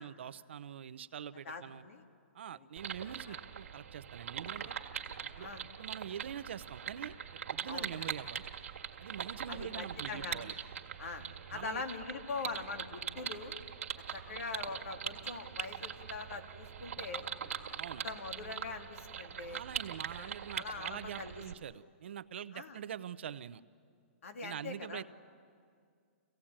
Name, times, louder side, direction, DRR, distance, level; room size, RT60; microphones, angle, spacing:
voice 1, 0.0-1.8 2.3-4.8 5.4-5.5 5.8-7.1 7.5-8.5 9.0-10.5 11.5-11.8 17.8-18.0 19.4-23.6 24.4-25.0, right 9 dB, 55° right, 14 dB, 0.6 m, -44 dB
voice 2, 1.4-2.0 3.3-3.4 5.4-5.6 7.7-7.9 9.5-10.4 11.0-13.6 14.1-17.2 17.7-17.8 18.0-19.6 20.2-21.4 22.5-22.8 24.2-25.0, left 4 dB, 75° left, 6 dB, 2.2 m, -43 dB
sound 1, 2.8-21.5, right 8 dB, 80° right, 1.8 m, -42 dB
27.0 x 16.5 x 8.7 m, 2.2 s
hypercardioid pair, 180°, 7 cm